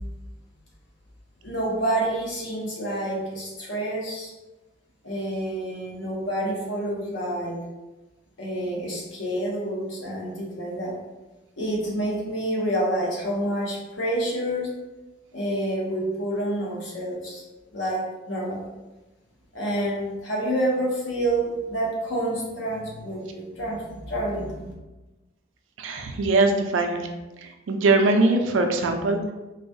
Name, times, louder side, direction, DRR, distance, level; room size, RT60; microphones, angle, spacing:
voice 1, 1.4-4.3 5.0-7.6 8.4-10.9 11.6-14.7 15.3-17.4 17.7-18.7 19.5-24.7, right 1 dB, 70° left, -3 dB, 0.9 m, -28 dB
voice 2, 25.8-27.0 27.4-29.3, right 3 dB, 80° right, 4 dB, 0.4 m, -22 dB
4.0 x 2.3 x 2.7 m, 1.1 s
head